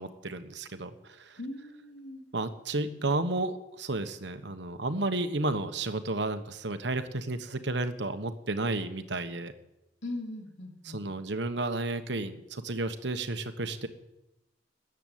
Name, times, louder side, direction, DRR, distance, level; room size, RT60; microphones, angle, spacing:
voice 1, 0.0-1.4 2.3-9.5 10.8-13.9, right 2 dB, 65° right, 9 dB, 1.2 m, -32 dB
voice 2, 1.4-2.2 10.0-11.1, left 2 dB, 70° left, 2 dB, 2.9 m, -40 dB
13.5 x 9.1 x 9.3 m, 0.93 s
head